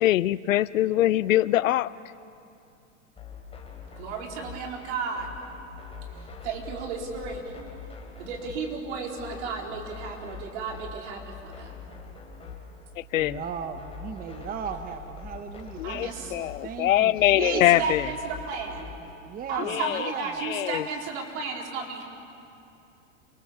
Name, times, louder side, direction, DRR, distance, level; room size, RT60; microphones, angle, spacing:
voice 1, 0.0-1.9 13.1-13.3 15.8-18.1 19.6-20.0 20.4-20.9, left 14 dB, 85° left, 19 dB, 0.6 m, -23 dB
sound 1, 3.2-19.1, left 5 dB, 15° left, 3.7 m, -43 dB
voice 2, 4.0-5.3 6.4-7.7 8.2-11.7 15.8-16.3 17.4-18.9 19.5-22.0, right 4 dB, 60° right, 0 dB, 4.3 m, -33 dB
voice 3, 13.2-17.8 19.3-19.7 20.0-20.2, right 7 dB, 20° right, 8 dB, 1.0 m, -36 dB
27.5 x 20.0 x 7.0 m, 2.6 s
hypercardioid pair, 115°, 38 cm